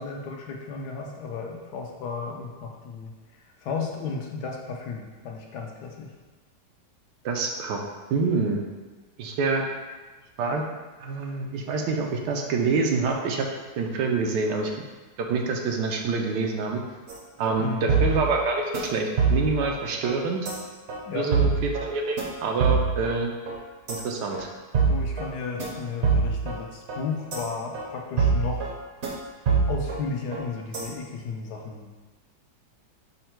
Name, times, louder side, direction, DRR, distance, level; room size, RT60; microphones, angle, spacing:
voice 1, 0.0-3.1 3.6-6.1 17.6-17.9 21.1-21.3 24.9-28.7 29.7-31.9, left 5 dB, 75° left, 1 dB, 1.1 m, -34 dB
voice 2, 7.2-7.8 8.1-8.6 9.2-9.6 10.4-10.7 11.0-13.5 13.8-14.8 15.2-16.8 17.4-20.4 21.1-21.5 21.8-23.3 23.9-24.5, right 4 dB, 80° right, 2 dB, 1.2 m, -26 dB
sound 1, 17.1-17.2 17.5-17.6 17.9-18.4 18.7-18.9 19.2-19.7 20.0-20.1 20.5-20.6 20.9-21.0 21.3-21.9 22.2-22.3 22.6-23.1 23.5-23.6 23.9-24.0 24.3-24.4 24.7-25.3 25.6-25.7 26.0-26.6 26.9-27.0 27.3-27.4 27.7-27.8 28.2-28.7 29.0-29.1 29.5-30.0 30.3-30.4 30.7-30.9, right 5 dB, 55° right, 0.8 m, -24 dB
5.5 x 2.1 x 4.4 m, 1.3 s
omnidirectional pair, 1.9 m